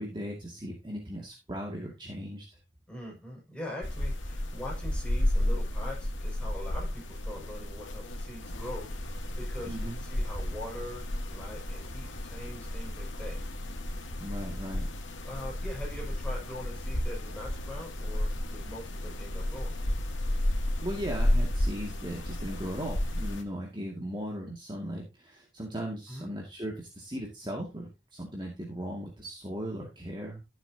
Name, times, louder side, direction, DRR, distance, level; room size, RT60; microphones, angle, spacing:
voice 1, 0.0-2.5 9.7-10.0 14.2-14.9 20.8-30.4, equal, 25° right, -1 dB, 2.2 m, -37 dB
voice 2, 2.9-8.9 9.4-9.7 10.0-13.4 15.2-19.7 26.1-26.3, left 1 dB, 5° left, -3 dB, 6.0 m, -42 dB
sound 1, 3.8-23.4, left 1 dB, 85° left, 1.8 m, -32 dB
13.5 x 7.5 x 2.8 m, 0.26 s
head